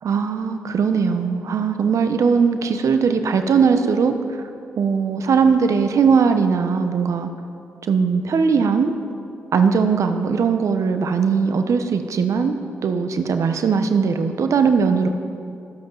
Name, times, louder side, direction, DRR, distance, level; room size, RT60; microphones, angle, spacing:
voice 1, 0.0-4.4 4.8-7.3 7.9-8.9 9.5-15.1, right 5 dB, 65° right, 8 dB, 0.9 m, -19 dB
19.5 x 7.9 x 4.0 m, 2.5 s
supercardioid pair, 45°, 6 cm